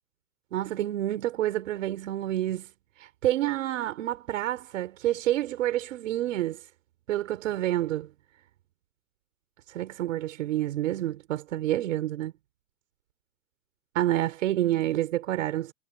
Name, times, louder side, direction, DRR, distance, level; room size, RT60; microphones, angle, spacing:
voice 1, 0.5-2.7 3.0-6.6 7.1-8.1 9.7-12.3 13.9-15.7, right 13 dB, 70° right, 5.3 m, -28 dB
hypercardioid pair, 120°, 39 cm